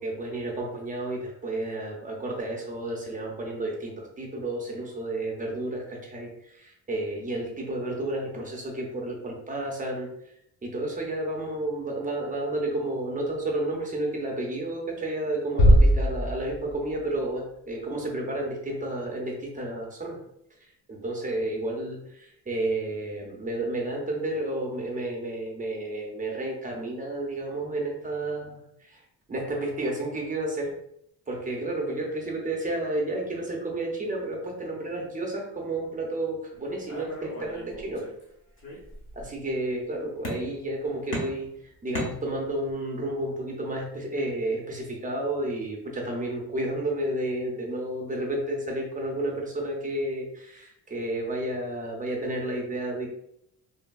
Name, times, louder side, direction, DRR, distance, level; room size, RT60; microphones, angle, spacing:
voice 1, 0.0-10.1 10.6-20.2 20.6-29.0 29.3-30.7 31.3-38.0 39.2-53.1, right 1 dB, 20° right, -1 dB, 0.4 m, -31 dB
sound 1, 15.6-17.2, equal, 60° left, 0.8 m, -20 dB
sound 2, 36.9-38.2 38.6-39.3 40.2-40.8 41.1-42.7, equal, 30° left, 0.6 m, -37 dB
3.2 x 2.1 x 2.2 m, 0.75 s
wide cardioid pair, 175°, 39 cm